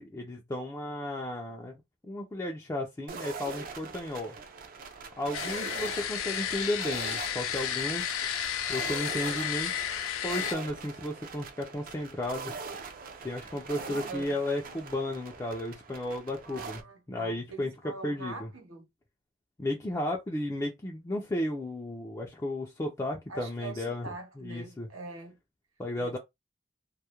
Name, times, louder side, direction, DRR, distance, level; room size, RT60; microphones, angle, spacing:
voice 1, 0.0-1.7 2.1-4.3 5.2-8.2 8.7-9.8 10.2-12.5 13.2-16.8 17.1-17.7 18.0-18.5 19.6-24.9 25.8-26.2, left 1 dB, 15° left, 0.4 m, -34 dB
sound 1, 3.1-16.8, right 4 dB, 45° right, 0.5 m, -42 dB
voice 2, 5.2-5.7 10.3-10.4 13.8-14.4 16.4-18.9 23.3-25.4 26.0-26.2, right 3 dB, 90° right, 0.9 m, -44 dB
sound 2, 5.3-10.5, left 9 dB, 85° left, 0.4 m, -32 dB
2.3 x 2.0 x 2.9 m
head